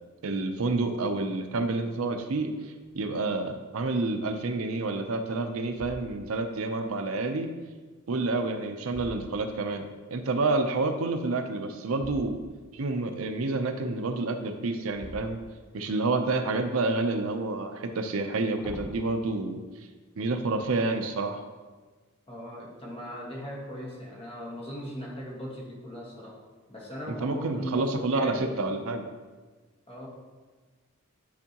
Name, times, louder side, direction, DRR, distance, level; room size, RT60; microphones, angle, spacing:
voice 1, 0.2-7.5 8.1-12.4 12.7-15.4 15.7-19.6 20.2-21.4 27.2-29.0, right 3 dB, 65° right, 6 dB, 0.5 m, -29 dB
sound 1, 2.8-3.3 3.8-3.9 4.5-5.1 5.6-6.5 8.2-9.9 11.9-12.7 14.8-15.9 16.4-17.1 18.2-19.0, equal, 5° right, 0.7 m, -46 dB
voice 2, 22.3-26.4 26.7-28.6 29.9-30.1, equal, 25° left, -4 dB, 1.5 m, -38 dB
9.5 x 4.5 x 2.9 m, 1.4 s
head